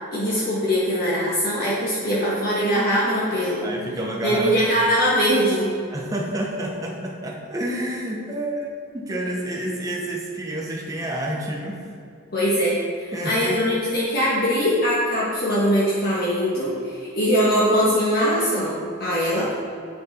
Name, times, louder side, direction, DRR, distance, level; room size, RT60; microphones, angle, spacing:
voice 1, 0.1-3.7 4.2-5.7 12.3-19.5, equal, 45° left, -7 dB, 1.5 m, -22 dB
voice 2, 3.6-4.6 5.9-11.8 13.1-13.6, right 1 dB, 15° right, -1 dB, 0.8 m, -29 dB
9.0 x 6.7 x 4.2 m, 2.5 s
head